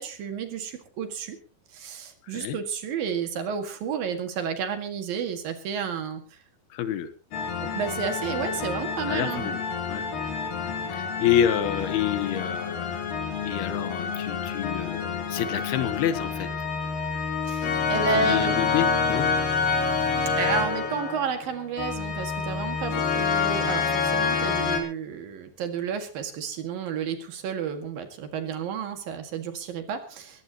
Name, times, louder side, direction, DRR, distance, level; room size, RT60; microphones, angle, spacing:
voice 1, 0.0-1.4 1.7-6.4 7.6-9.6 17.5-18.5 20.4-30.4, right 6 dB, 65° right, 7 dB, 3.5 m, -31 dB
voice 2, 2.2-2.6 6.7-7.1 9.1-9.6 9.9-10.0 10.9-13.0 13.4-16.5 18.2-19.3, left 10 dB, 75° left, 12 dB, 2.9 m, -28 dB
sound 1, 7.3-24.8, left 5 dB, 60° left, 4.4 m, -28 dB
22.0 x 16.5 x 2.9 m, 0.36 s
omnidirectional pair, 4.7 m